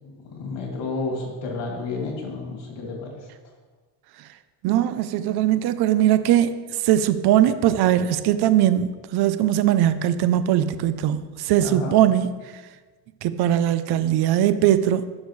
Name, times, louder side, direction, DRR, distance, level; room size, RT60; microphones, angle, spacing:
voice 1, 0.0-3.1 11.6-12.0, left 3 dB, 70° left, 2.6 m, -31 dB
voice 2, 4.6-12.3 13.2-15.1, right 11 dB, 60° right, 0.6 m, -20 dB
12.0 x 6.3 x 3.2 m
cardioid pair, 115°, 44 cm